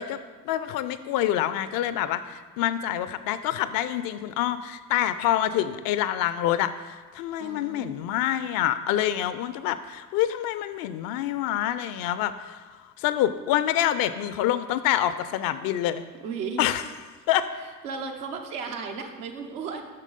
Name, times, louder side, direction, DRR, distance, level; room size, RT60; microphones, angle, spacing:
voice 1, 0.0-16.0 16.6-16.8 17.3-17.5, left 12 dB, 50° left, 13 dB, 0.5 m, -27 dB
voice 2, 7.4-7.9 16.2-16.6 17.8-19.8, right 5 dB, 70° right, 3 dB, 0.9 m, -34 dB
7.4 x 6.1 x 3.9 m, 1.4 s
figure-of-eight pair, 45°, 46 cm